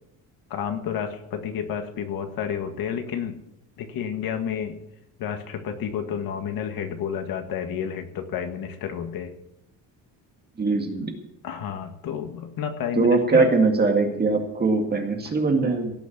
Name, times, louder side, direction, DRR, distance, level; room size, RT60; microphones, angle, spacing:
voice 1, 0.5-3.4 3.8-4.8 5.2-9.3 11.4-13.5 15.3-15.4, left 8 dB, 65° left, 6 dB, 1.8 m, -30 dB
voice 2, 10.6-11.1 13.0-15.9, right 3 dB, 25° right, 3 dB, 2.0 m, -21 dB
17.0 x 6.2 x 8.6 m, 0.83 s
cardioid pair, 165°, 37 cm